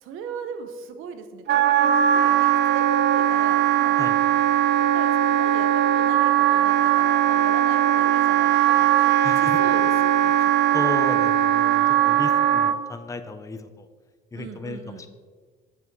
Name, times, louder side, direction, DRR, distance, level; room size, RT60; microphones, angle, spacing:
voice 1, 0.0-4.0 4.9-10.9 12.1-12.4 14.3-15.1, right 6 dB, 80° right, 9 dB, 0.9 m, -39 dB
Wind instrument woodwind instrument, 1.5-12.8, right 11 dB, 55° right, 0.5 m, -19 dB
voice 2, 9.2-9.6 10.7-13.9 14.3-15.1, left 3 dB, 15° left, 9 dB, 0.5 m, -34 dB
7.8 x 5.8 x 4.6 m, 1.5 s
cardioid pair, 95°, 21 cm